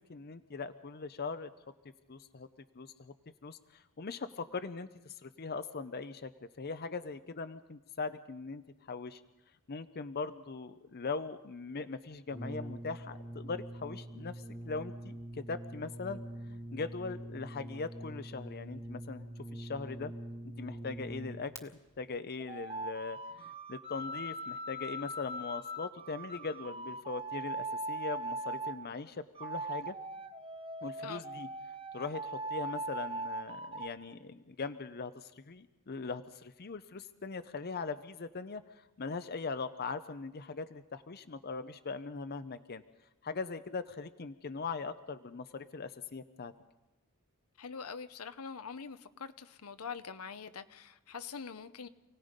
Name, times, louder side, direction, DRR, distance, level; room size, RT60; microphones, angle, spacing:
voice 1, 0.0-1.5 2.1-2.5 2.7-3.1 3.4-8.6 8.9-9.2 9.7-16.2 16.5-20.1 20.6-30.0 30.8-31.5 31.9-42.8 43.2-46.5, left 4 dB, 45° left, 0.6 m, -40 dB
Brass instrument, 12.3-21.6, right 1 dB, 15° left, 1.5 m, -44 dB
sound 1, 22.4-28.8 29.3-33.9, right 2 dB, 25° right, 1.1 m, -40 dB
voice 2, 47.6-51.9, left 6 dB, 75° left, 0.8 m, -44 dB
28.5 x 18.0 x 5.2 m
head